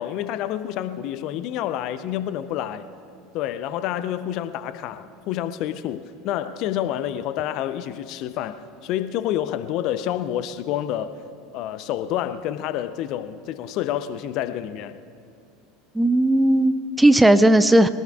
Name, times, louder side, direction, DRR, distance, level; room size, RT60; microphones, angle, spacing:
voice 1, 0.0-2.9 3.3-11.1 11.5-15.0, left 11 dB, 50° left, 13 dB, 0.6 m, -28 dB
voice 2, 15.9-17.9, right 1 dB, 5° right, 13 dB, 0.5 m, -16 dB
23.0 x 18.5 x 2.4 m, 2.4 s
figure-of-eight pair, 75°, 0 cm